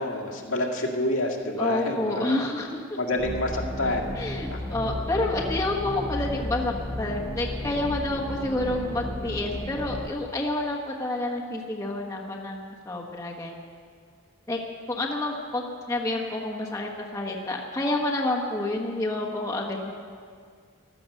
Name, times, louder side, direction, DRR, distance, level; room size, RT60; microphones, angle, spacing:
voice 1, 0.0-2.3 3.0-4.6 4.9-5.0, left 1 dB, 80° left, 0 dB, 2.1 m, -28 dB
voice 2, 1.6-3.0 4.1-13.5 14.5-14.6 14.9-19.9, left 2 dB, 15° left, -2 dB, 1.2 m, -29 dB
sound 1, 3.2-10.1, left 1 dB, ahead, 1.0 m, -33 dB
15.5 x 12.5 x 6.4 m, 2.1 s
head